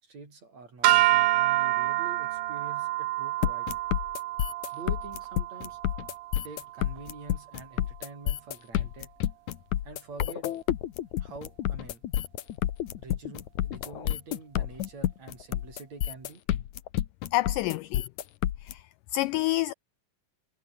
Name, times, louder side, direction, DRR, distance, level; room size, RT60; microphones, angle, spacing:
voice 1, 0.0-3.7 4.7-5.8 6.4-9.1 9.8-10.5 11.2-12.0 13.0-16.4, right 4 dB, 45° right, 7.1 m, -46 dB
sound 1, 0.8-7.2, right 17 dB, 75° right, 2.0 m, -28 dB
sound 2, 3.4-18.7, left 12 dB, 65° left, 2.3 m, -29 dB
voice 2, 17.3-18.0 18.7-18.8 19.1-19.7, left 17 dB, 85° left, 1.9 m, -27 dB
omnidirectional pair, 4.2 m